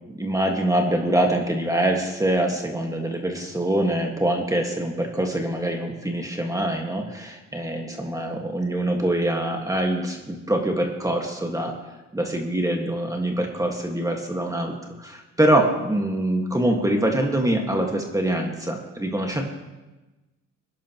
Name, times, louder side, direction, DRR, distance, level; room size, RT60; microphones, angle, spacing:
voice 1, 0.1-11.7 12.1-19.4, right 1 dB, 10° right, 1 dB, 1.8 m, -24 dB
20.5 x 11.0 x 3.1 m, 1.1 s
cardioid pair, 90°, 30 cm